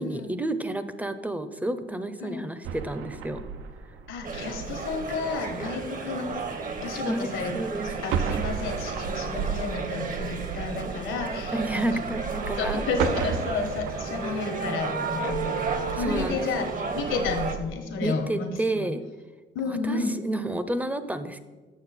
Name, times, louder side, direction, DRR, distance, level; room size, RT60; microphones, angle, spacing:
voice 1, 0.0-3.4 5.6-5.7 7.1-7.3 7.5-7.9 11.5-12.9 16.0-16.7 18.0-19.0 19.7-21.4, right 1 dB, 10° right, 11 dB, 0.5 m, -30 dB
sound 1, 2.6-17.8, right 6 dB, 90° right, 0.5 m, -35 dB
voice 2, 4.1-6.5 6.8-7.5 7.8-12.0 12.6-18.9 19.5-20.1, left 4 dB, 80° left, 5 dB, 1.2 m, -32 dB
sound 2, 4.2-17.6, right 4 dB, 45° right, 0.8 m, -34 dB
sound 3, 13.3-17.2, right 4 dB, 65° right, 1.4 m, -35 dB
7.1 x 6.5 x 4.1 m, 1.3 s
cardioid pair, 90°, 20 cm